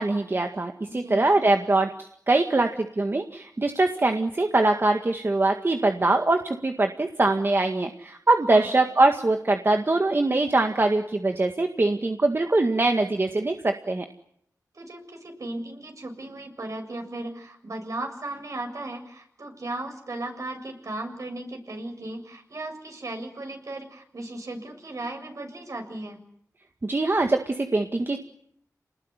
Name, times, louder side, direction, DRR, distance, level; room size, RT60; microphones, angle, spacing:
voice 1, 0.0-1.9 2.3-14.1 26.8-28.2, right 2 dB, 35° right, 5 dB, 1.9 m, -23 dB
voice 2, 0.9-1.3 8.5-8.7 14.7-26.2, right 2 dB, 60° right, 5 dB, 7.0 m, -36 dB
29.5 x 20.0 x 9.8 m, 0.70 s
wide cardioid pair, 95°, 6 cm